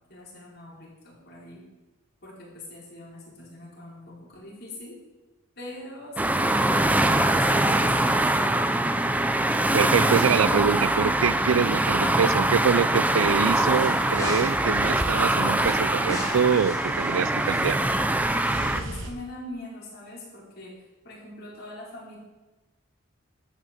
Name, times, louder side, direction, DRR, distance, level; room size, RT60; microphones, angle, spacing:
voice 1, 0.1-1.6 2.2-5.0 5.5-8.3 18.7-20.7 21.0-22.2, left 1 dB, 55° left, -5 dB, 5.1 m, -42 dB
sound 1, 6.2-18.8, right 1 dB, 10° right, 0.6 m, -23 dB
voice 2, 9.7-17.8, right 6 dB, 85° right, 18 dB, 0.5 m, -25 dB
sound 2, 13.1-14.7 15.6-19.1, left 1 dB, 15° left, 3.0 m, -40 dB
sound 3, 13.2-19.1, right 2 dB, 65° right, 1.4 m, -40 dB
13.0 x 6.2 x 8.5 m, 1.1 s
head